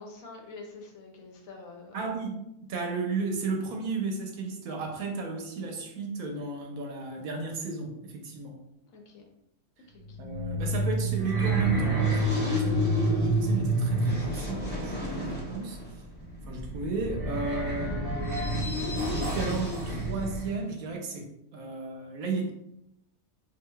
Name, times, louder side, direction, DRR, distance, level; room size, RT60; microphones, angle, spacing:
voice 1, 0.0-2.2 8.8-9.2 9.9-10.2, left 3 dB, 70° left, 1 dB, 1.0 m, -46 dB
voice 2, 1.9-2.4 2.7-8.6 10.2-15.8 16.4-18.8 19.1-22.5, right 3 dB, 80° right, 2 dB, 1.1 m, -34 dB
sound 1, 10.0-20.5, right 1 dB, 10° left, 0.5 m, -29 dB
3.8 x 2.7 x 2.2 m, 0.81 s
omnidirectional pair, 1.5 m